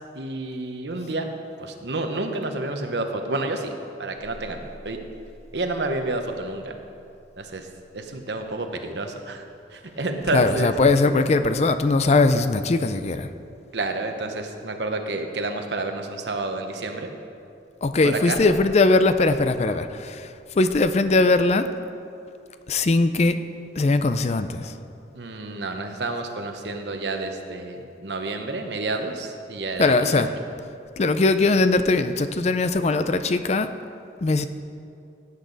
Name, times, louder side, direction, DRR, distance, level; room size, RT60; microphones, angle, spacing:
voice 1, 0.1-1.3 1.6-3.7 4.0-5.0 5.5-6.7 7.4-7.7 7.9-9.4 9.7-10.7 13.7-17.1 18.0-18.4 25.1-30.0, right 2 dB, 75° right, 5 dB, 1.0 m, -29 dB
voice 2, 10.3-13.3 17.8-21.7 22.7-23.4 23.8-24.7 29.8-30.3 31.0-33.7 34.2-34.5, left 3 dB, 40° left, 10 dB, 0.4 m, -20 dB
16.5 x 8.3 x 4.0 m, 2.5 s
head